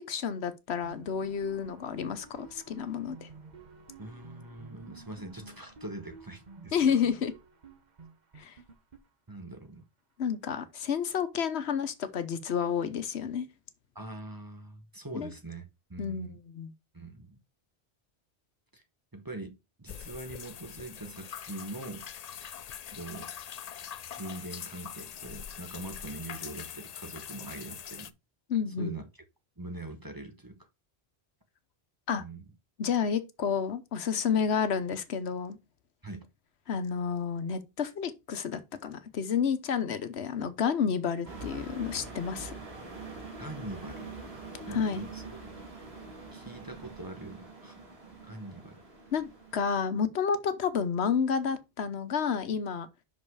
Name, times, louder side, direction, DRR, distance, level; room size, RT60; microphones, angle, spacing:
voice 1, 0.0-3.3 6.7-7.3 8.4-8.5 10.2-13.5 15.2-15.3 16.0-16.7 28.5-28.9 32.1-32.2 32.8-35.6 36.7-42.5 44.7-45.1 49.1-52.9, left 7 dB, 85° left, 1.2 m, -30 dB
sound 1, 0.8-9.7, right 4 dB, 45° right, 1.1 m, -51 dB
voice 2, 4.0-7.0 9.3-9.9 13.9-16.4 16.9-17.4 18.7-18.8 19.1-22.1 22.9-23.3 24.2-28.1 28.8-29.0 29.6-30.7 32.2-32.5 36.0-36.3 43.4-44.1 44.6-45.2 46.3-47.8 48.2-48.8, right 2 dB, 20° right, 1.0 m, -43 dB
sound 2, 19.9-28.1, left 8 dB, 50° left, 0.5 m, -43 dB
sound 3, 41.2-49.8, right 3 dB, 75° right, 2.4 m, -44 dB
5.9 x 5.4 x 4.7 m
omnidirectional pair, 1.1 m